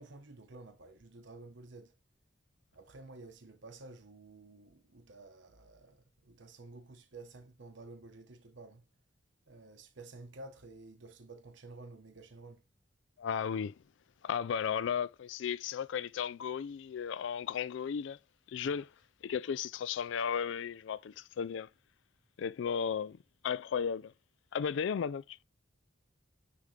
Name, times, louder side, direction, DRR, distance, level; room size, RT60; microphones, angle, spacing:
voice 1, 0.0-1.9 2.7-8.8 9.5-12.6 18.6-18.8, right 2 dB, 65° right, 1.0 m, -52 dB
voice 2, 13.2-13.7 14.2-18.2 18.5-18.9 19.2-21.7 22.4-23.2 23.4-24.1 24.5-25.4, left 7 dB, 65° left, 0.3 m, -34 dB
10.0 x 3.6 x 3.2 m
head